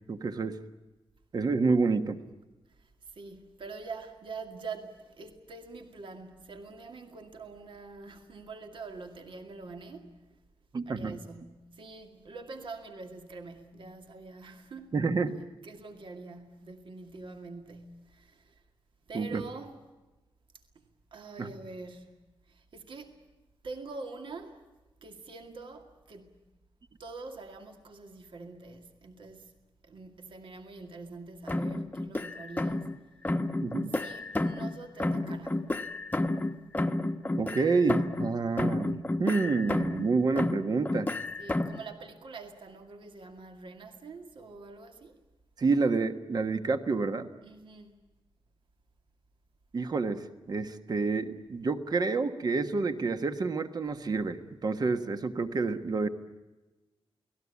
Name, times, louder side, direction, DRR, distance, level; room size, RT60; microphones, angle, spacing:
voice 1, 0.1-0.6 1.3-2.2 10.7-11.2 14.9-15.4 19.1-19.4 21.4-21.5 33.6-33.9 37.4-41.1 45.6-47.3 49.7-56.1, right 4 dB, 45° right, 1.4 m, -28 dB
voice 2, 2.8-10.3 10.9-15.0 15.6-18.6 19.1-19.8 20.7-22.2 22.5-23.2 23.6-24.6 25.0-26.3 27.0-29.5 29.8-33.2 33.9-35.8 41.4-45.2 47.4-48.0, right 3 dB, 60° right, 2.2 m, -45 dB
sound 1, 31.5-33.0 33.2-34.7 35.0-38.3 38.6-40.1 40.4-41.8, left 2 dB, 15° left, 1.1 m, -31 dB
29.5 x 19.0 x 8.4 m
wide cardioid pair, 180°, 10 cm